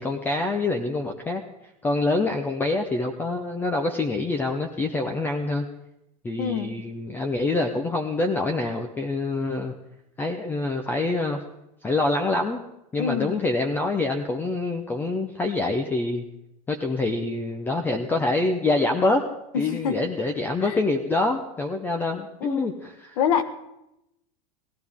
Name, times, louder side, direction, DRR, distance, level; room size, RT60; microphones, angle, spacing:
voice 1, 0.0-1.4 1.8-5.7 6.2-9.7 10.2-11.4 11.8-12.6 12.9-16.2 16.7-19.2 19.5-23.2, left 2 dB, 10° left, 5 dB, 0.6 m, -26 dB
voice 2, 6.4-6.8 13.0-13.4 19.5-20.0 20.6-20.8 22.4-22.7 23.2-23.4, left 7 dB, 70° left, 10 dB, 1.2 m, -26 dB
17.5 x 13.0 x 3.6 m, 0.86 s
supercardioid pair, 160°, 18 cm